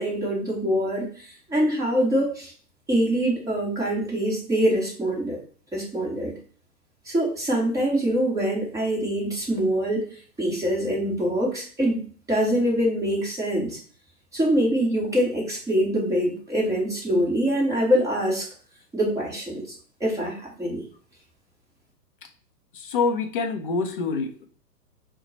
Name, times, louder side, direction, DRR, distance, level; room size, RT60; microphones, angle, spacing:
voice 1, 0.0-2.5 2.9-5.4 5.7-6.3 7.1-13.8 14.3-18.5 18.9-19.6 20.0-20.8, equal, 5° right, -5 dB, 1.0 m, -24 dB
voice 2, 22.7-24.5, left 4 dB, 35° left, 6 dB, 0.4 m, -26 dB
4.1 x 2.2 x 3.8 m, 0.44 s
hypercardioid pair, 125°, 50 cm